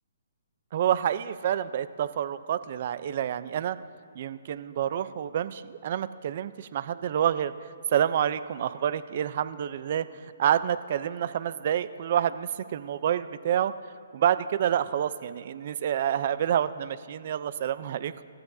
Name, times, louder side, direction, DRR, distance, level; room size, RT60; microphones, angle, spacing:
voice 1, 0.7-3.8 4.1-13.7 14.1-18.1, right 10 dB, 50° right, 14 dB, 0.6 m, -28 dB
27.5 x 14.0 x 2.8 m, 2.4 s
hypercardioid pair, 150°, 0 cm